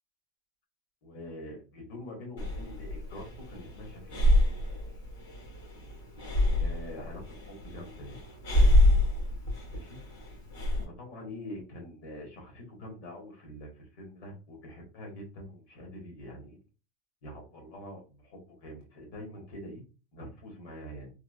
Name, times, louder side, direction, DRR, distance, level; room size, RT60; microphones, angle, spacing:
voice 1, 1.0-4.3 6.6-8.2 9.7-10.0 10.8-16.6 17.2-19.8 20.1-21.1, left 1 dB, 50° left, -1 dB, 1.7 m, -45 dB
Breathing, 2.4-10.8, left 1 dB, 85° left, 1.7 m, -27 dB
3.7 x 2.8 x 2.5 m, 0.32 s
supercardioid pair, 165°, 0 cm